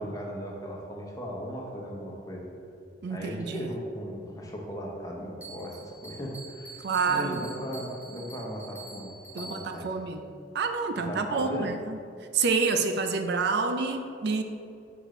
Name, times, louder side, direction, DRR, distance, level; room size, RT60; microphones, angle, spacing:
voice 1, 0.0-2.5 3.1-9.9 11.1-11.7, equal, 20° left, -2 dB, 0.9 m, -37 dB
voice 2, 3.0-3.7 6.8-7.4 9.3-10.2 10.5-12.0 12.3-14.4, right 4 dB, 60° right, 6 dB, 0.4 m, -28 dB
Bell, 5.4-9.9, right 2 dB, 10° right, 1.0 m, -46 dB
6.3 x 4.9 x 3.8 m, 2.5 s
head